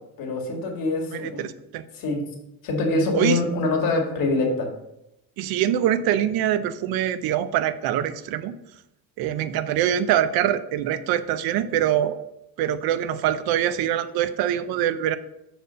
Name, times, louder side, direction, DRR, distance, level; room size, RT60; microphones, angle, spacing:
voice 1, 0.2-1.4 1.9-2.2 2.6-4.7, left 2 dB, 65° left, 1 dB, 2.0 m, -24 dB
voice 2, 1.1-1.8 3.1-3.4 5.4-8.5 9.2-12.2 12.6-15.2, right 11 dB, 80° right, 13 dB, 0.6 m, -24 dB
6.8 x 4.5 x 5.1 m, 0.86 s
cardioid pair, 135°, 36 cm